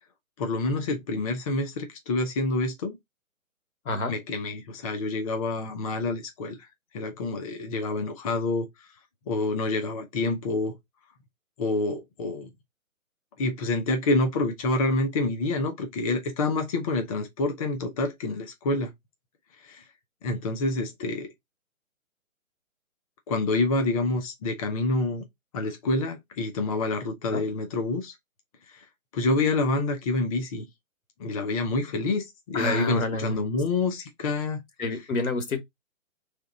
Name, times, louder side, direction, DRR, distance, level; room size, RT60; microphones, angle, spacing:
voice 1, 0.4-3.0 4.1-6.6 6.9-8.7 9.3-10.7 11.6-12.5 13.4-18.9 19.6-19.8 20.2-21.3 23.3-25.2 25.5-28.1 28.7-28.8 29.1-30.7 31.2-34.6, left 2 dB, 25° left, 0.8 m, -27 dB
voice 2, 32.5-33.4 34.8-35.6, left 2 dB, 75° left, 1.6 m, -28 dB
3.5 x 3.4 x 4.0 m
hypercardioid pair, 150°, 42 cm